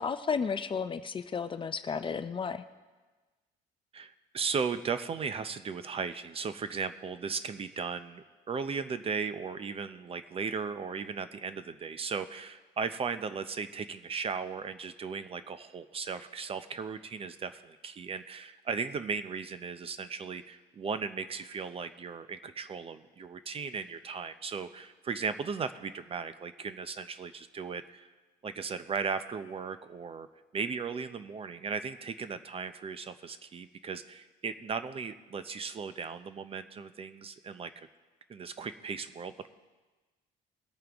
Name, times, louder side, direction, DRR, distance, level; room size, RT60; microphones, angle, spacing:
voice 1, 0.0-2.6, left 6 dB, 30° left, 11 dB, 0.5 m, -33 dB
voice 2, 3.9-28.1 28.4-30.3 30.5-37.9 38.3-39.5, right 5 dB, 35° right, 11 dB, 0.6 m, -36 dB
20.5 x 8.8 x 3.5 m, 1.3 s
cardioid pair, 110°, 17 cm